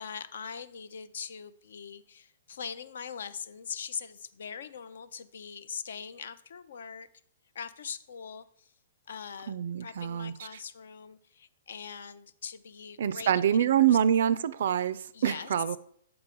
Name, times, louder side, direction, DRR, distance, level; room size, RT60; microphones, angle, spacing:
voice 1, 0.0-7.1 7.5-8.7 9.1-9.5 9.8-14.0 15.1-15.5, left 6 dB, 65° left, 14 dB, 0.4 m, -42 dB
voice 2, 9.5-10.3 13.0-15.8, right 9 dB, 60° right, 17 dB, 0.3 m, -26 dB
5.5 x 3.9 x 5.5 m, 0.63 s
figure-of-eight pair, 115°, 0 cm